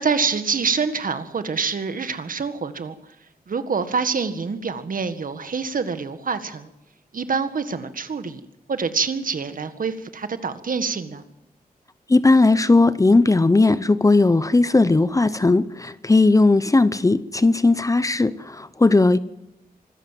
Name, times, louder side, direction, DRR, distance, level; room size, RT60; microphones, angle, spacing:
voice 1, 0.0-3.0 3.5-6.7 7.1-8.4 8.7-11.2, right 5 dB, 65° right, 10 dB, 1.8 m, -26 dB
voice 2, 12.1-19.2, left 3 dB, 20° left, 16 dB, 0.7 m, -17 dB
25.0 x 14.0 x 7.5 m, 0.92 s
wide cardioid pair, 150°, 15 cm